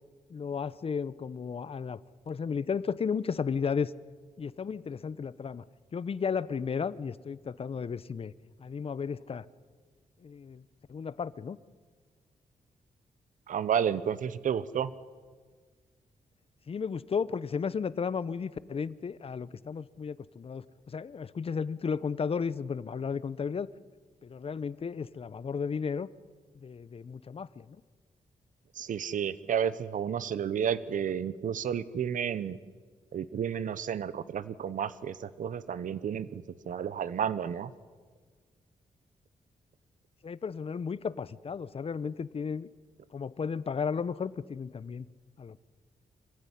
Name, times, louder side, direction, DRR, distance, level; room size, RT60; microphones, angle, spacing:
voice 1, 0.3-2.0 2.3-3.9 4.4-5.6 5.9-8.3 8.6-9.4 10.2-10.6 10.9-11.6 16.7-23.7 24.2-26.1 26.6-27.8 40.2-42.7 43.1-45.1 45.4-45.6, left 6 dB, 45° left, 18 dB, 0.8 m, -34 dB
voice 2, 13.5-14.9 28.7-32.6 33.1-37.7, right 8 dB, 70° right, 16 dB, 0.9 m, -31 dB
25.5 x 15.0 x 10.0 m, 1.5 s
cardioid pair, 105°, 14 cm